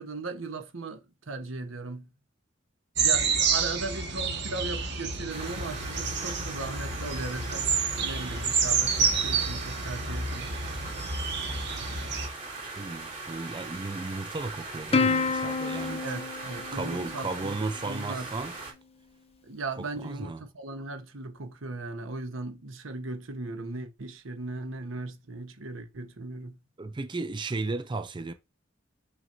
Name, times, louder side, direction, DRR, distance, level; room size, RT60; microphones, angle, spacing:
voice 1, 0.0-2.1 3.0-10.6 16.0-17.6 17.9-18.3 19.4-26.6, right 3 dB, 85° right, 1.1 m, -37 dB
sound 1, 3.0-12.3, right 5 dB, 60° right, 1.6 m, -29 dB
sound 2, 5.3-18.7, right 3 dB, 40° right, 2.9 m, -40 dB
voice 2, 12.8-16.1 16.7-18.5 19.8-20.4 26.8-28.3, right 3 dB, 25° right, 0.5 m, -34 dB
Plucked string instrument, 14.9-17.7, left 4 dB, 30° left, 0.6 m, -29 dB
6.1 x 6.0 x 2.6 m
head